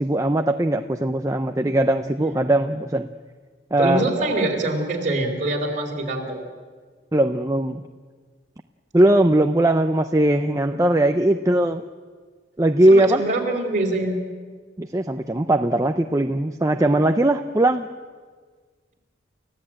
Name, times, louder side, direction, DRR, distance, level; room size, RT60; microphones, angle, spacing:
voice 1, 0.0-3.1 3.7-4.0 7.1-7.9 8.9-11.8 12.6-13.2 14.8-17.9, right 1 dB, 15° right, 6 dB, 0.6 m, -19 dB
voice 2, 3.8-6.4 12.9-14.2, right 2 dB, 40° right, 1 dB, 4.1 m, -24 dB
29.5 x 15.5 x 8.9 m, 1.5 s
head